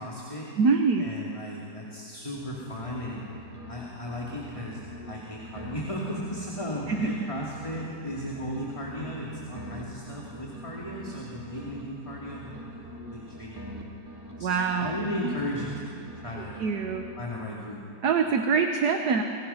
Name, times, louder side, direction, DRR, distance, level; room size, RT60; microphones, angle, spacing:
voice 1, 0.0-0.5 1.0-3.3 3.7-12.6 13.1-13.7 14.4-16.6 17.2-17.8, equal, 15° left, -4 dB, 2.7 m, -36 dB
voice 2, 0.6-1.0 6.9-7.1 14.4-14.9 15.2-15.3 16.6-17.0 18.0-19.2, right 5 dB, 65° right, 5 dB, 1.6 m, -24 dB
sound 1, 2.2-7.8 8.1-11.8 12.1-15.8 16.1-17.5, equal, 10° right, 2.9 m, -43 dB
29.0 x 25.5 x 5.8 m, 2.7 s
omnidirectional pair, 1.9 m